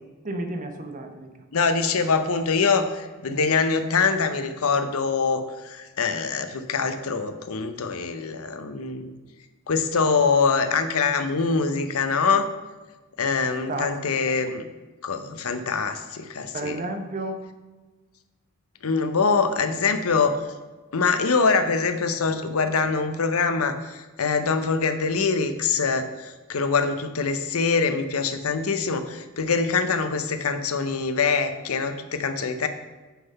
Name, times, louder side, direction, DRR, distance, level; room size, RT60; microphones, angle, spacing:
voice 1, 0.2-1.3 13.4-14.3 16.5-17.4, right 2 dB, 40° right, 6 dB, 0.8 m, -32 dB
voice 2, 1.5-9.1 9.7-12.5 13.2-14.7 15.0-16.8 18.8-20.4 20.9-32.7, left 4 dB, 90° left, 9 dB, 0.7 m, -24 dB
8.4 x 3.9 x 5.4 m, 1.2 s
head